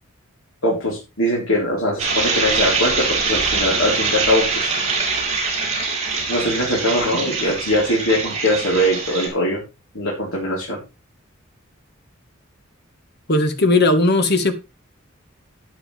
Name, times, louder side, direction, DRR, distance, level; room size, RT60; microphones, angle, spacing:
voice 1, 0.6-4.7 6.3-9.6 9.9-10.8, equal, 75° left, 4.2 m, -21 dB
sound 1, 2.0-9.3, right 4 dB, 35° right, 5.3 m, -23 dB
voice 2, 13.3-14.6, left 2 dB, 50° left, 1.7 m, -17 dB
13.0 x 9.8 x 3.5 m
head